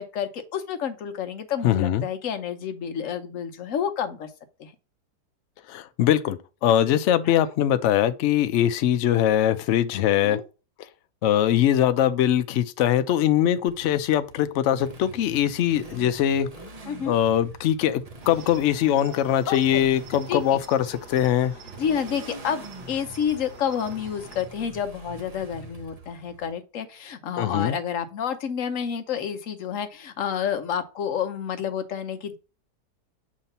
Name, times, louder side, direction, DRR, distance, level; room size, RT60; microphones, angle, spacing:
voice 1, 0.0-4.3 4.6-4.7 7.2-7.3 10.2-10.4 16.9-17.1 19.5-19.8 20.3-20.6 21.8-32.4, left 8 dB, 60° left, 1.1 m, -29 dB
voice 2, 1.6-2.1 5.7-10.4 11.2-16.5 17.1-21.5 27.4-27.8, left 11 dB, 80° left, 0.6 m, -22 dB
Motorcycle, 13.7-26.5, right 2 dB, 40° right, 0.6 m, -45 dB
Cricket, 18.2-24.4, right 4 dB, 75° right, 1.7 m, -46 dB
7.3 x 2.9 x 5.3 m
omnidirectional pair, 1.8 m